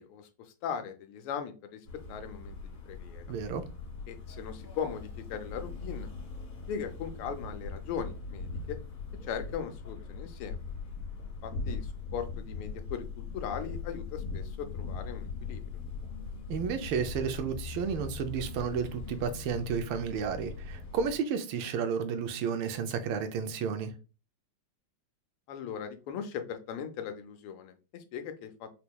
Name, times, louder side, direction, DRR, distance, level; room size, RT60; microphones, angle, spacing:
voice 1, 0.0-1.8 2.1-2.6 2.9-3.2 4.1-6.1 6.7-8.8 9.2-10.6 11.4-15.6 25.5-28.8, left 7 dB, 90° left, 1.5 m, -39 dB
sound 1, 1.8-21.2, left 4 dB, 50° left, 2.0 m, -40 dB
voice 2, 3.3-3.6 16.5-23.9, right 6 dB, 80° right, 1.4 m, -32 dB
4.3 x 2.8 x 2.2 m
omnidirectional pair, 2.3 m